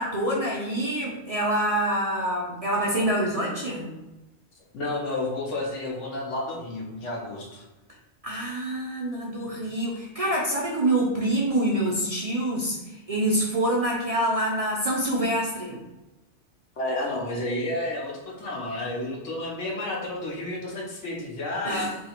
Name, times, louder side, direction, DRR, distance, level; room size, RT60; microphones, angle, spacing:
voice 1, 0.0-3.9 8.2-15.8 21.6-21.9, right 1 dB, 40° right, -4 dB, 0.5 m, -26 dB
voice 2, 4.7-7.6 16.8-21.9, left 2 dB, 75° left, -2 dB, 1.2 m, -31 dB
2.8 x 2.8 x 4.3 m, 1.0 s
omnidirectional pair, 1.2 m